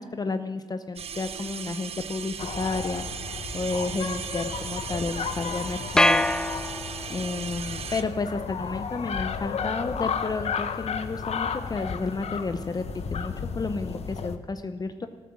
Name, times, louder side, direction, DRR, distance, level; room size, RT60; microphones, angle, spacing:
voice 1, 0.0-6.3 7.1-12.9 13.1-15.1, left 3 dB, 35° left, 9 dB, 0.7 m, -31 dB
sound 1, 1.0-8.0, right 7 dB, 65° right, 0.8 m, -37 dB
sound 2, 2.4-14.4, left 6 dB, 70° left, 0.9 m, -33 dB
sound 3, 6.0-7.3, left 1 dB, 5° left, 0.5 m, -23 dB
14.5 x 8.6 x 7.3 m, 1.4 s
cardioid pair, 80°, 11 cm